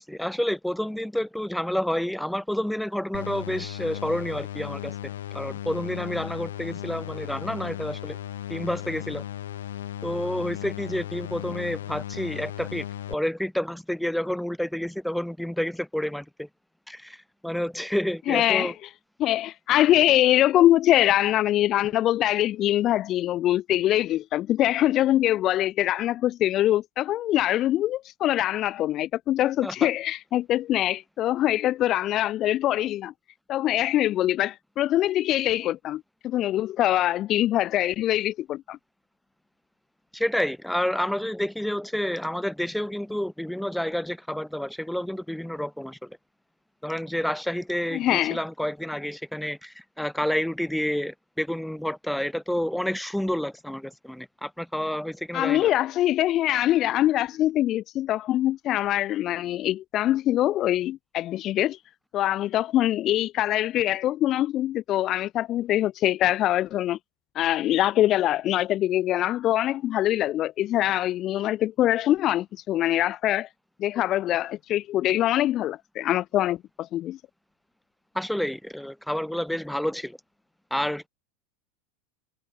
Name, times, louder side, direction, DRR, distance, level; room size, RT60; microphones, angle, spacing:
voice 1, 0.0-8.2 8.5-9.2 10.0-16.5 16.9-18.7 29.6-29.9 40.1-46.2 46.8-55.7 78.1-80.2 80.7-81.1, left 1 dB, ahead, 2.5 m, -29 dB
sound 1, 3.1-13.1, left 12 dB, 75° left, 5.1 m, -36 dB
voice 2, 18.3-18.7 19.2-33.1 33.5-38.8 47.9-48.4 55.3-61.8 62.1-67.0 67.3-73.5 73.8-77.2, left 13 dB, 45° left, 0.8 m, -23 dB
hypercardioid pair, 85°, 0 cm